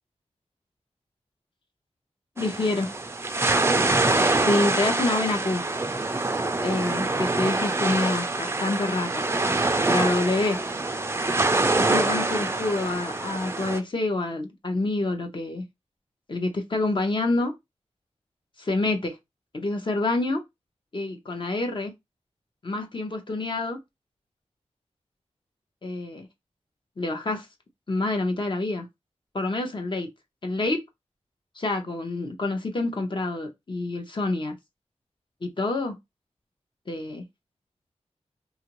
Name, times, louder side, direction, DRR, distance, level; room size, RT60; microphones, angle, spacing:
voice 1, 2.4-2.9 4.4-5.6 6.6-9.2 9.9-10.6 11.8-15.6 16.3-17.5 18.6-19.2 19.5-20.4 20.9-21.9 22.6-23.8 25.8-26.3 27.0-27.5 27.9-28.9 29.3-30.1 30.4-30.8 31.6-34.5 35.4-36.0 36.9-37.2, left 2 dB, 45° left, 0.7 m, -27 dB
sound 1, 2.4-13.8, right 2 dB, 20° right, 0.4 m, -25 dB
2.9 x 2.4 x 2.9 m
wide cardioid pair, 85°, 12 cm